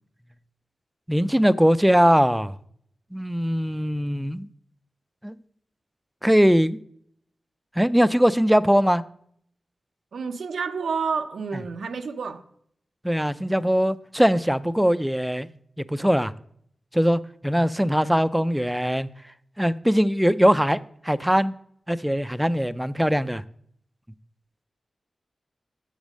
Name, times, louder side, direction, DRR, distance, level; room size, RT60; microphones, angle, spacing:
voice 1, 1.1-2.5 3.1-4.5 5.2-5.4 6.2-6.8 7.8-9.0 13.0-15.5 15.8-16.3 16.9-19.1 19.6-20.8 21.0-21.5 21.9-23.4, equal, 5° right, 0.4 m, -21 dB
voice 2, 10.1-12.4, right 5 dB, 85° right, 0.5 m, -29 dB
7.2 x 5.2 x 6.3 m
cardioid pair, 60°, 0 cm